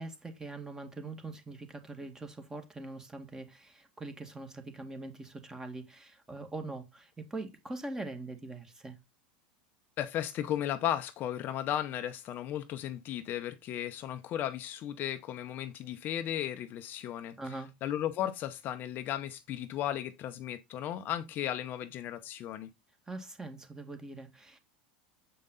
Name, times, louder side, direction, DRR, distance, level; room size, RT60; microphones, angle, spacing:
voice 1, 0.0-9.0 17.4-17.7 23.1-24.6, right 2 dB, 10° right, 2.1 m, -42 dB
voice 2, 10.0-17.4 17.8-22.7, left 11 dB, 45° left, 0.8 m, -35 dB
7.7 x 5.4 x 3.8 m
hypercardioid pair, 105°, 5 cm